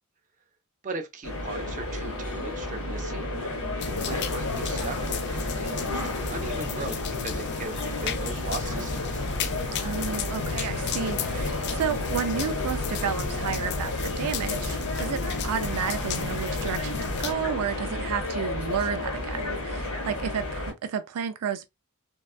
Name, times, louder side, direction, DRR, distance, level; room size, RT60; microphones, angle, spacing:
voice 1, 0.8-3.3 4.0-9.3, right 3 dB, 35° right, 0.6 m, -38 dB
sound 1, 1.2-20.7, left 2 dB, 70° left, 1.3 m, -32 dB
sound 2, 3.8-17.3, left 5 dB, 50° left, 0.4 m, -34 dB
voice 2, 9.8-21.7, right 7 dB, 85° right, 0.4 m, -32 dB
3.4 x 2.3 x 2.3 m
head